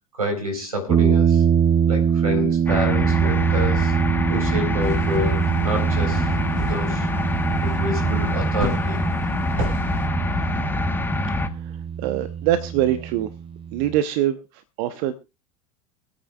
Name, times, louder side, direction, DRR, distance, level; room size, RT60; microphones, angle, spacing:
voice 1, 0.2-1.4 1.9-3.9 4.3-6.3 6.6-7.1 7.6-9.0, left 1 dB, 85° right, 4.1 m, -28 dB
sound 1, 0.9-14.0, right 8 dB, 25° right, 0.9 m, -23 dB
sound 2, 2.7-11.5, left 2 dB, 10° left, 1.1 m, -25 dB
sound 3, 4.8-10.1, right 1 dB, 70° right, 7.0 m, -35 dB
voice 2, 12.0-13.3 13.7-15.1, right 12 dB, 55° right, 0.9 m, -24 dB
26.0 x 9.0 x 2.4 m
figure-of-eight pair, 75°, 18 cm